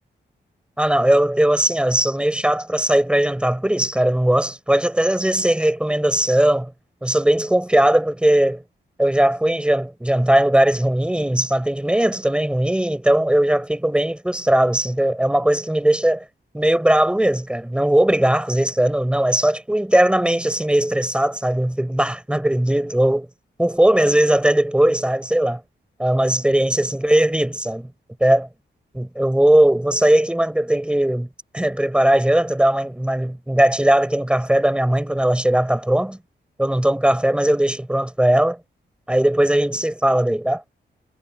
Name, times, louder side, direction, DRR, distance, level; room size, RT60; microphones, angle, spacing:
voice 1, 0.8-6.7 7.0-8.6 9.0-16.2 16.5-23.3 23.6-25.6 26.0-27.9 28.2-28.5 28.9-31.3 31.5-36.2 36.6-38.6 39.1-40.6, right 1 dB, 5° right, 7.2 m, -19 dB
wide cardioid pair, 180°, 19 cm